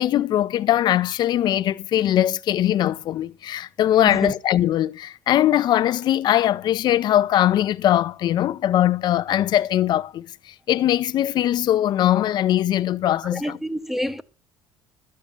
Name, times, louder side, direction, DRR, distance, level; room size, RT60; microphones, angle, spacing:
voice 1, 0.0-13.6, left 12 dB, 55° left, 0.6 m, -21 dB
voice 2, 13.3-14.2, equal, ahead, 0.8 m, -27 dB
12.5 x 8.6 x 6.8 m
cardioid pair, 110°, 9 cm